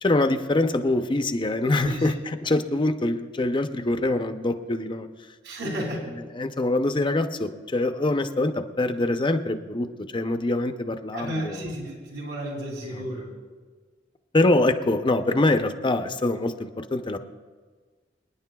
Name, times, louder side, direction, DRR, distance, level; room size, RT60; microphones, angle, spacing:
voice 1, 0.0-5.1 6.3-9.9 10.1-11.7 12.9-13.3 14.3-17.2, left 2 dB, 25° left, 8 dB, 0.6 m, -24 dB
voice 2, 5.4-6.1 11.1-13.3, right 1 dB, 70° right, -1 dB, 2.7 m, -32 dB
28.0 x 10.0 x 2.3 m, 1.5 s
head